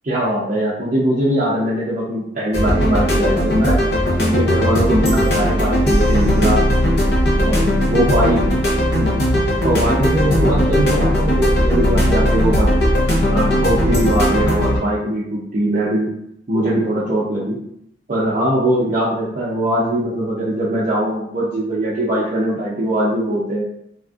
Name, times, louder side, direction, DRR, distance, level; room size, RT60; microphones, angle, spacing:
voice 1, 0.0-3.8 4.2-6.6 7.4-8.4 9.0-9.1 9.6-12.7 13.3-16.1 16.5-17.6 18.1-23.6, right 1 dB, 45° right, -8 dB, 0.5 m, -21 dB
sound 1, 2.5-14.8, equal, 60° left, 0.7 m, -17 dB
3.4 x 2.5 x 2.3 m, 0.74 s
head